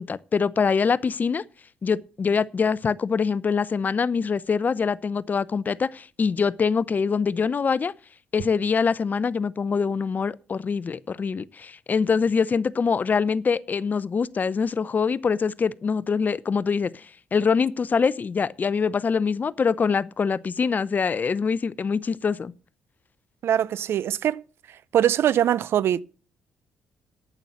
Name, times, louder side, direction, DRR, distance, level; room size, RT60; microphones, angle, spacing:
voice 1, 0.0-1.4 1.8-7.9 8.3-17.1 17.3-22.5, left 5 dB, 40° left, 0.6 m, -24 dB
voice 2, 23.4-24.4 24.9-26.0, right 10 dB, 65° right, 0.5 m, -22 dB
9.0 x 7.9 x 7.1 m
supercardioid pair, 60°, 4 cm